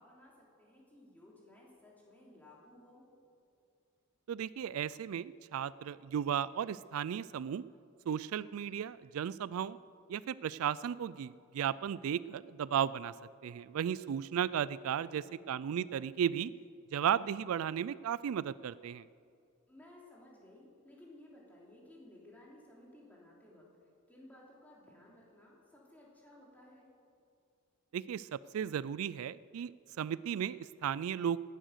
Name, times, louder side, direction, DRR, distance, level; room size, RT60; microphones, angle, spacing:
voice 1, 0.0-3.1 15.0-15.4 19.7-23.7 24.1-26.9, left 1 dB, 10° left, -4 dB, 3.2 m, -57 dB
voice 2, 4.3-7.6 8.1-9.8 10.1-13.1 13.4-16.5 16.9-19.1 27.9-29.7 30.0-31.4, right 8 dB, 90° right, 19 dB, 0.3 m, -35 dB
17.5 x 10.0 x 6.5 m, 2.4 s
head